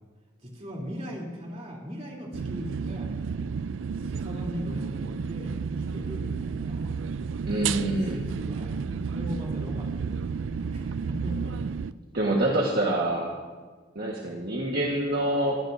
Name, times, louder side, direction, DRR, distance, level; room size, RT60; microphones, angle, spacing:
voice 1, 0.4-3.1 4.0-6.9 8.0-8.7 9.1-11.6, equal, 35° right, -2 dB, 3.3 m, -39 dB
sound 1, 2.3-11.9, right 5 dB, 75° right, 0.4 m, -31 dB
voice 2, 7.4-8.2 12.1-13.4 13.9-15.6, right 1 dB, 50° right, -2 dB, 1.6 m, -26 dB
22.5 x 14.5 x 2.7 m, 1.4 s
head